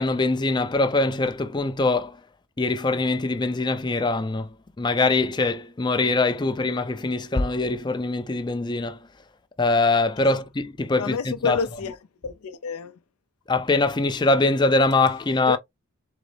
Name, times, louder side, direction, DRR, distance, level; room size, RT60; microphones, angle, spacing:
voice 1, 0.0-2.2 2.6-4.5 4.8-9.0 9.6-11.6 13.5-15.6, left 3 dB, 20° left, 0.4 m, -23 dB
voice 2, 11.0-12.0 12.2-13.0 15.5-15.6, left 5 dB, 80° left, 0.4 m, -28 dB
4.0 x 3.8 x 3.2 m
head